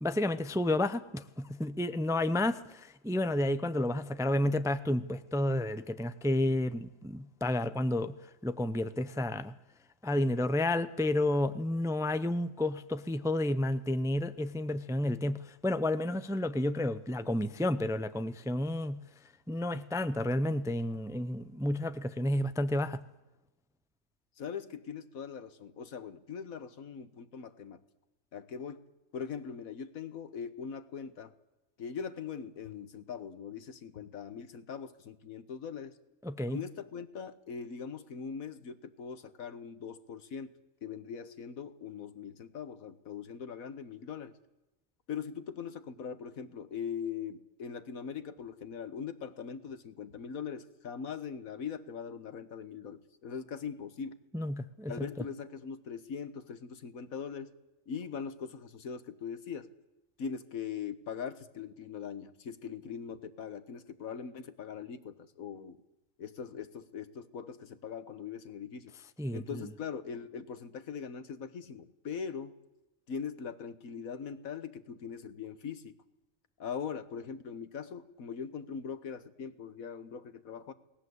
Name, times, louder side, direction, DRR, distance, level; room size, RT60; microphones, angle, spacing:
voice 1, 0.0-8.1 8.4-9.5 10.0-19.0 19.5-23.0 36.2-36.6 54.3-55.1 69.2-69.7, left 1 dB, 5° right, 0.5 m, -31 dB
voice 2, 24.4-27.8 28.3-28.9 29.1-31.3 31.8-36.0 36.5-44.3 45.1-54.2 54.9-57.5 57.9-59.7 60.2-65.8 66.2-68.9 69.3-72.6 73.1-76.0 76.6-80.7, left 6 dB, 85° left, 1.7 m, -41 dB
29.0 x 19.5 x 8.1 m
omnidirectional pair, 1.4 m